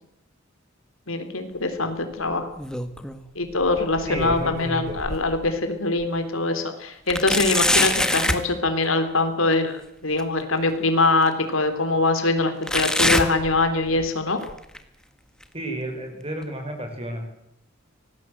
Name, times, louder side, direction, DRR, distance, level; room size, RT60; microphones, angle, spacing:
voice 1, 1.1-2.5 3.4-14.4, left 2 dB, 80° left, 7 dB, 3.8 m, -23 dB
sound 1, 2.3-3.2 3.6-5.5 6.0-6.1 7.1-8.5 10.2-10.3 11.2-11.3 12.7-14.1 14.4-14.8 15.4-15.5 16.4-16.5, left 1 dB, 5° left, 1.7 m, -25 dB
voice 2, 4.1-5.0 15.5-17.3, right 1 dB, 30° right, 5 dB, 5.6 m, -31 dB
25.5 x 19.0 x 8.0 m, 0.79 s
head